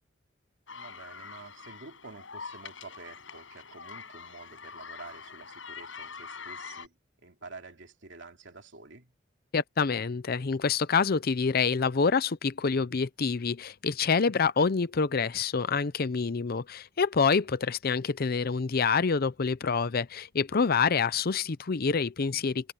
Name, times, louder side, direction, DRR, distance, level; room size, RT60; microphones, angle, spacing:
sound 1, 0.7-6.9, left 5 dB, 90° left, 5.9 m, -44 dB
voice 1, 0.7-7.0 7.2-9.1, right 3 dB, 70° right, 2.8 m, -49 dB
voice 2, 9.5-22.7, left 5 dB, 50° left, 0.6 m, -27 dB
head